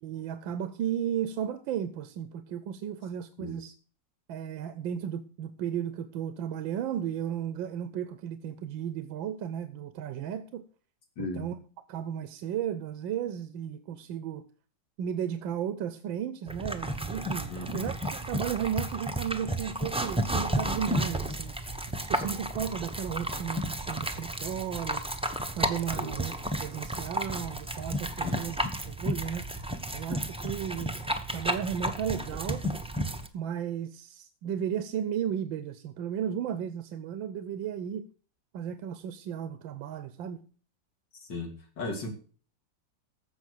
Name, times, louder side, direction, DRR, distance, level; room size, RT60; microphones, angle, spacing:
voice 1, 0.0-3.7 4.3-10.7 11.2-11.6 11.9-14.5 15.0-21.6 22.1-25.0 25.6-26.3 26.6-28.6 28.9-29.5 29.9-31.0 31.3-32.6 33.3-38.1 38.5-40.4, right 9 dB, 85° right, 1.5 m, -34 dB
voice 2, 11.2-11.5 17.5-17.9 26.0-26.2 28.2-28.4 41.2-42.1, left 2 dB, 70° left, 3.6 m, -36 dB
sound 1, 16.5-33.3, right 1 dB, 5° right, 0.6 m, -32 dB
14.5 x 5.8 x 6.6 m
omnidirectional pair, 2.0 m